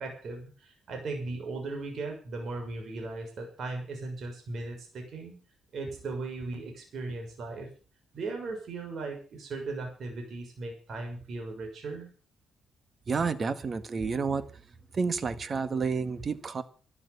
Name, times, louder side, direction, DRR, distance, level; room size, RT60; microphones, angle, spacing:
voice 1, 0.0-5.4 5.7-7.7 8.1-12.1, right 3 dB, 60° right, 3 dB, 6.4 m, -37 dB
voice 2, 13.1-14.4 14.9-16.6, right 5 dB, 45° right, 13 dB, 1.7 m, -30 dB
12.5 x 12.0 x 7.1 m, 0.39 s
cardioid pair, 80°, 0 cm